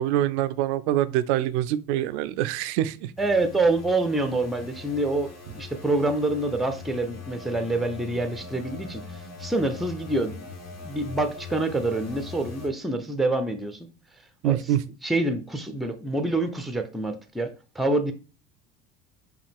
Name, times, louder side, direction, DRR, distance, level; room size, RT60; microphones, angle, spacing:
voice 1, 0.0-3.1 14.4-14.8, right 12 dB, 75° right, 0.5 m, -25 dB
sound 1, 3.2-12.7, left 3 dB, 45° left, 1.5 m, -42 dB
voice 2, 3.2-9.0 9.4-10.4 10.8-13.9 14.4-14.6 15.0-18.1, right 2 dB, ahead, 0.5 m, -26 dB
5.6 x 2.3 x 3.5 m
hypercardioid pair, 75°, 35 cm